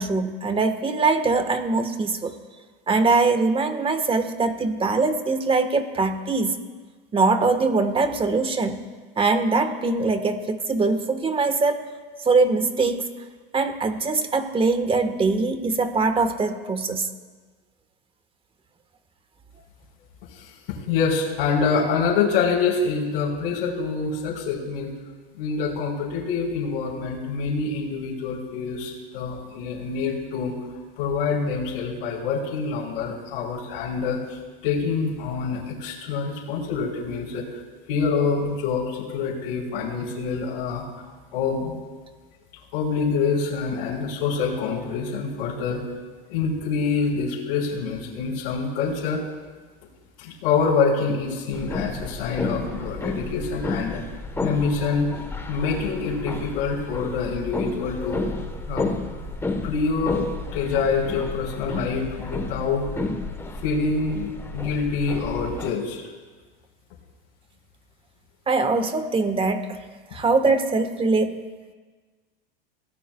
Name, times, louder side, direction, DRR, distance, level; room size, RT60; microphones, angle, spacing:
voice 1, 0.0-2.3 2.9-6.6 7.1-8.8 9.2-11.9 12.2-13.1 13.5-17.1 68.5-69.8 70.1-71.4, right 3 dB, 20° right, 8 dB, 1.4 m, -22 dB
voice 2, 20.3-24.9 25.3-30.5 31.0-37.4 37.9-40.8 41.3-41.8 42.7-45.8 46.3-49.2 50.2-54.0 54.4-55.1 55.5-58.2 58.7-58.9 59.6-62.9 63.6-66.0, left 5 dB, 65° left, -6 dB, 4.2 m, -26 dB
sound 1, 51.5-65.7, left 2 dB, 10° left, 1.2 m, -32 dB
29.5 x 17.5 x 2.3 m, 1.4 s
supercardioid pair, 115°, 29 cm